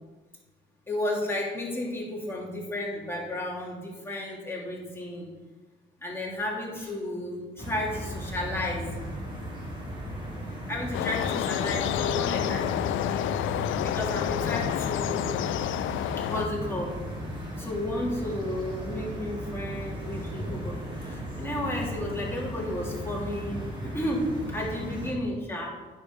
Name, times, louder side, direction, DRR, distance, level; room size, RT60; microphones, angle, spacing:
voice 1, 0.9-5.3 6.0-8.9 10.7-13.3 13.8-15.3 16.2-17.0 17.6-25.7, left 1 dB, 10° left, -4 dB, 3.0 m, -33 dB
sound 1, 7.6-25.1, equal, 25° right, 3.4 m, -36 dB
sound 2, 10.9-16.5, left 12 dB, 80° left, 0.4 m, -29 dB
9.5 x 5.6 x 5.7 m, 1.3 s
cardioid pair, 90°, 20 cm